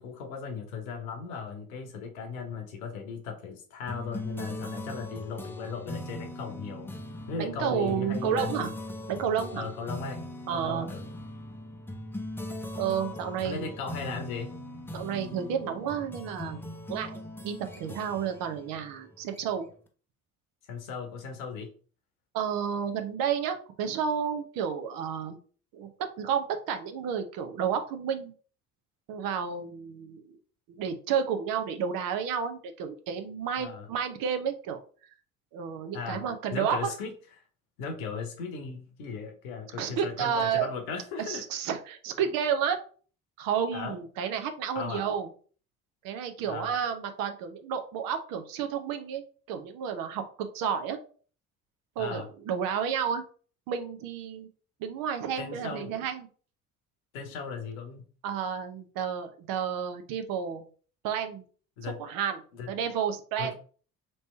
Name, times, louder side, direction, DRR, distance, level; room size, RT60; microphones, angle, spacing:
voice 1, 0.0-6.9 7.3-8.7 9.5-10.2 10.5-11.1 13.4-14.5 20.7-21.7 33.6-33.9 35.9-36.2 36.5-37.1 37.8-41.4 43.7-44.0 44.7-45.0 46.4-46.7 52.0-52.3 55.4-55.9 57.1-58.0 61.8-62.0 62.6-62.7 63.4-63.5, left 5 dB, 70° left, 6 dB, 1.0 m, -37 dB
sound 1, 3.9-19.7, left 1 dB, 5° left, 0.7 m, -40 dB
voice 2, 7.4-8.7 9.1-9.6 10.5-10.9 12.8-13.7 14.9-16.6 16.9-19.7 22.3-25.4 25.7-28.3 29.1-30.4 30.7-35.1 35.5-36.9 39.8-40.7 41.3-42.8 43.4-45.3 46.0-51.0 52.0-53.2 53.7-54.5 54.8-56.3 58.2-60.6 61.0-61.4 61.8-62.4 62.7-63.5, right 7 dB, 50° right, 7 dB, 0.8 m, -31 dB
3.2 x 3.0 x 4.2 m, 0.41 s
figure-of-eight pair, 50°, 43 cm